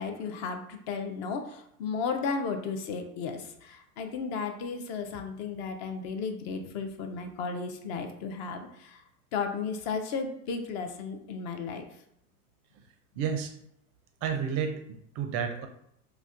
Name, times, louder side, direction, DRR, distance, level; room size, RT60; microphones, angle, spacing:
voice 1, 0.0-9.0 9.3-11.9, left 5 dB, 40° left, 6 dB, 0.5 m, -34 dB
voice 2, 13.2-13.5 14.2-15.7, right 7 dB, 35° right, 6 dB, 0.4 m, -31 dB
4.0 x 2.2 x 2.5 m, 0.71 s
hypercardioid pair, 105°, 43 cm